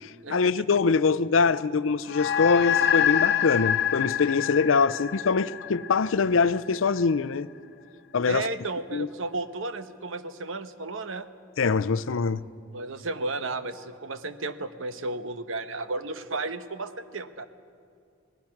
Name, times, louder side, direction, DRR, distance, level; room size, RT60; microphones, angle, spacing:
voice 1, 0.0-7.5 8.1-8.5 8.9-9.1 11.6-12.4, left 5 dB, 80° left, 0.5 m, -24 dB
sound 1, 2.1-6.8, left 9 dB, 55° left, 0.9 m, -26 dB
voice 2, 8.3-11.3 12.7-17.5, right 3 dB, 80° right, 1.0 m, -33 dB
26.0 x 19.0 x 5.9 m
head